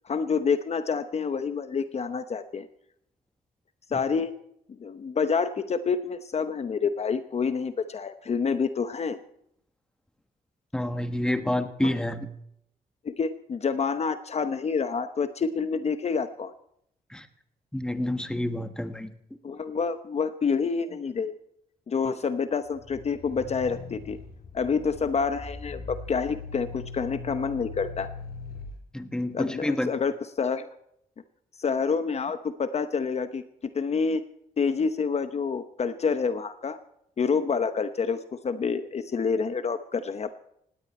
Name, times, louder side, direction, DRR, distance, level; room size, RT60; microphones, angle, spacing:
voice 1, 0.0-2.7 3.9-4.3 4.8-9.2 13.0-16.5 19.4-21.4 21.9-24.2 24.5-28.1 29.3-30.7 31.6-34.2 34.6-36.8 37.2-40.3, left 5 dB, 45° left, 11 dB, 0.9 m, -28 dB
voice 2, 10.7-12.3 17.1-17.3 17.7-19.1 28.9-29.9, left 1 dB, 5° left, 8 dB, 1.4 m, -28 dB
sound 1, 22.7-28.8, left 4 dB, 75° left, 3.5 m, -41 dB
18.5 x 17.0 x 4.3 m, 0.73 s
cardioid pair, 115°, 15 cm